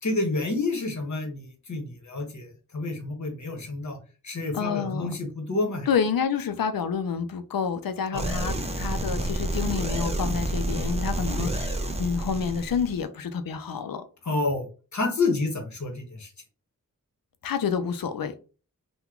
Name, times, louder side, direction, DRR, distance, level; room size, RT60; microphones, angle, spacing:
voice 1, 0.0-4.0 4.2-5.9 8.1-8.2 11.4-11.5 14.2-16.3, left 3 dB, 55° left, 1.1 m, -29 dB
voice 2, 4.5-5.1 5.9-14.0 17.4-18.3, left 6 dB, 80° left, 0.5 m, -28 dB
sound 1, 8.2-13.0, right 1 dB, 20° right, 0.6 m, -29 dB
2.9 x 2.2 x 3.6 m
wide cardioid pair, 50°, 34 cm